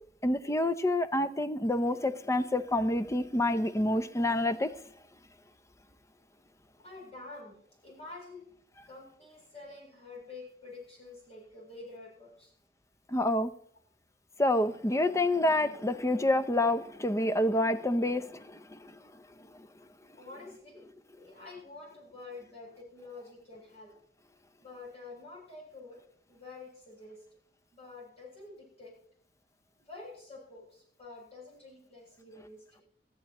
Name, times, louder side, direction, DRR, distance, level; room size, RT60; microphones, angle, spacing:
voice 1, 0.2-4.7 13.1-13.5 14.4-18.9, left 1 dB, 15° left, 0.6 m, -28 dB
voice 2, 6.8-7.6 7.8-8.5 8.9-12.5 20.2-20.8 21.1-23.9 24.6-26.0 26.3-27.2 27.7-28.9 29.8-32.8, left 3 dB, 35° left, 7.6 m, -48 dB
20.5 x 14.0 x 3.0 m
head